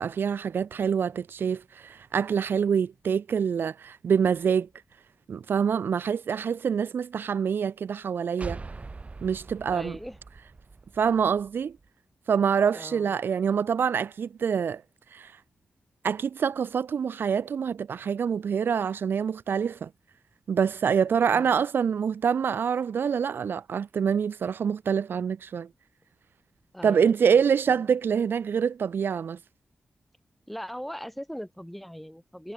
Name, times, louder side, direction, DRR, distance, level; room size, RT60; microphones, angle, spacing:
voice 1, 0.0-4.7 5.3-8.6 9.2-10.0 11.0-11.8 12.3-14.8 15.1-15.3 16.0-19.9 20.5-25.7 26.8-29.4, right 7 dB, 75° right, 1.0 m, -26 dB
sound 1, 8.4-11.9, right 3 dB, 35° right, 1.7 m, -42 dB
voice 2, 9.7-10.2 12.7-13.2 21.2-21.6 26.7-27.4 30.5-32.5, equal, 5° left, 5.7 m, -40 dB
cardioid pair, 80°, 4 cm